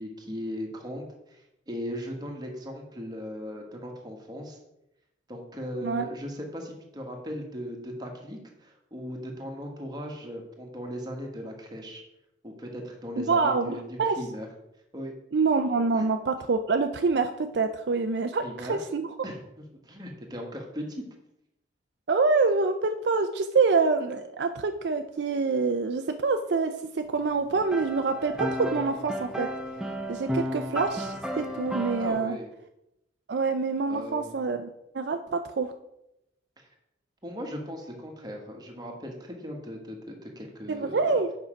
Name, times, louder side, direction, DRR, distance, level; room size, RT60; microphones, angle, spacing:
voice 1, 0.0-4.6 5.3-12.0 12.4-14.5 14.9-15.1 15.9-16.0 18.4-18.8 19.2-21.0 32.0-32.5 33.9-34.3 36.6-36.7 37.2-41.2, equal, 20° right, 1 dB, 1.4 m, -38 dB
voice 2, 13.2-14.2 15.3-19.1 22.1-29.5 30.1-32.4 33.3-35.7 40.7-41.3, right 4 dB, 65° right, 7 dB, 0.4 m, -26 dB
sound 1, 27.5-32.1, right 1 dB, 5° right, 0.6 m, -33 dB
8.3 x 5.6 x 5.1 m, 0.85 s
head